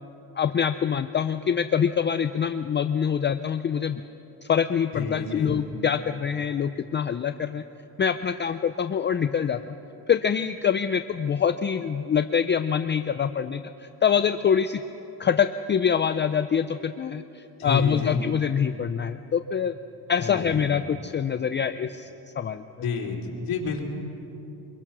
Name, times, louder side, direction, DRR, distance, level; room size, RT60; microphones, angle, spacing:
voice 1, 0.4-4.0 4.5-7.6 8.0-9.6 10.1-13.6 14.0-14.8 15.2-19.7 20.1-22.1 22.4-22.6, left 7 dB, 30° left, 10 dB, 0.5 m, -25 dB
voice 2, 4.9-5.6 17.6-18.2 20.2-20.7 22.8-23.8, left 5 dB, 60° left, -1 dB, 3.9 m, -29 dB
24.5 x 22.0 x 6.1 m, 2.9 s
cardioid pair, 130°, 40 cm